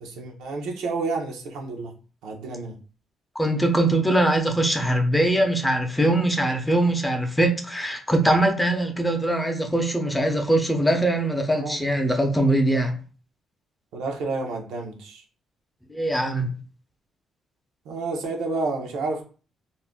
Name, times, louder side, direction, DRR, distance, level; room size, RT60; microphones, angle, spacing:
voice 1, 0.0-1.9 2.2-2.8 11.5-11.9 13.9-15.2 17.9-19.2, right 3 dB, 90° right, 1 dB, 0.6 m, -30 dB
voice 2, 3.4-12.9 15.9-16.5, right 1 dB, 10° left, 4 dB, 0.6 m, -22 dB
2.5 x 2.1 x 3.5 m, 0.37 s
cardioid pair, 90°, 0 cm